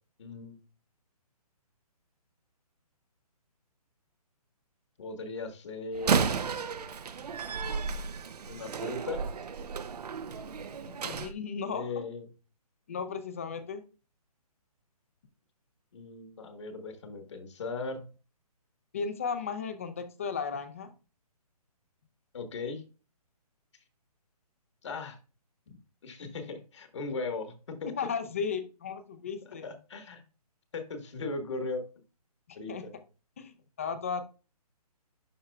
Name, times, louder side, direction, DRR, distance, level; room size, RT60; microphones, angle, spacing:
voice 1, 0.2-0.6 5.0-6.5 8.4-9.2 11.0-11.1 11.7-12.3 15.9-18.0 22.3-22.8 24.8-25.2 25.7-25.8 26.0-27.5 27.8-27.9 29.4-30.2 30.7-31.8 32.5-32.9, left 3 dB, 45° left, 7 dB, 1.4 m, -38 dB
Slam, 5.9-11.3, right 6 dB, 80° right, 0.7 m, -33 dB
voice 2, 11.0-11.9 12.9-13.8 18.9-20.9 27.9-29.6 32.5-32.9 33.4-34.2, left 6 dB, 20° left, 10 dB, 0.5 m, -35 dB
11.5 x 4.3 x 2.3 m, 0.33 s
hypercardioid pair, 170°, 20 cm